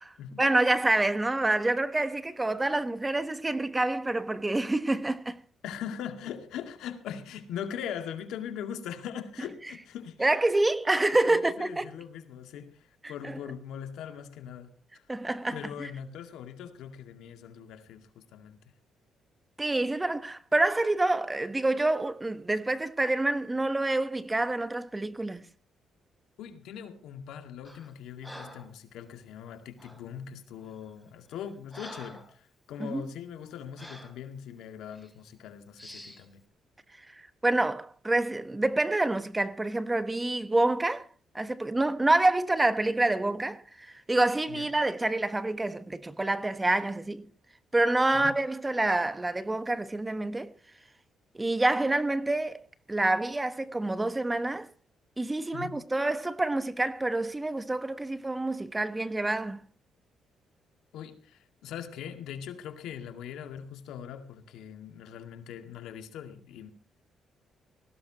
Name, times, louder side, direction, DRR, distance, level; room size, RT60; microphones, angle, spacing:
voice 1, 0.0-5.4 10.2-11.9 13.2-13.4 15.1-15.9 19.6-25.5 32.8-33.1 37.4-41.1 41.3-47.2 47.7-50.5 51.3-52.6 52.9-54.7 55.2-59.6, right 2 dB, 15° right, 1.2 m, -27 dB
voice 2, 5.6-10.3 11.2-14.7 15.5-18.6 26.4-36.4 44.5-44.7 48.1-48.3 55.5-55.8 60.9-66.7, left 8 dB, 85° left, 2.1 m, -41 dB
Breathing, 27.6-27.9 28.2-28.7 29.8-30.1 30.7-30.9 31.3-32.4 32.8-33.0 33.8-34.2 34.9-35.1 35.8-36.3, equal, ahead, 3.7 m, -47 dB
19.0 x 16.5 x 3.0 m
cardioid pair, 90°, 0 cm